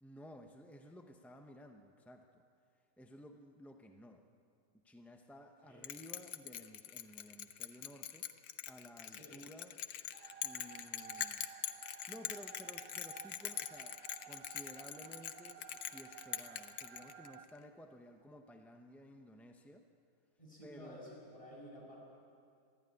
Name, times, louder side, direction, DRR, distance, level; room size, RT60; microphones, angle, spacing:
voice 1, 0.0-2.4 3.0-4.2 4.7-8.3 8.7-9.8 10.4-11.5 11.9-19.9 20.6-21.0, equal, ahead, 4 dB, 0.4 m, -55 dB
Bell, 5.8-17.5, left 11 dB, 80° left, 1.4 m, -43 dB
voice 2, 9.0-9.4 20.4-22.1, equal, 20° left, -3 dB, 6.2 m, -53 dB
sound 1, 10.1-17.5, right 8 dB, 50° right, 0.9 m, -55 dB
22.5 x 14.0 x 9.7 m, 2.3 s
omnidirectional pair, 1.8 m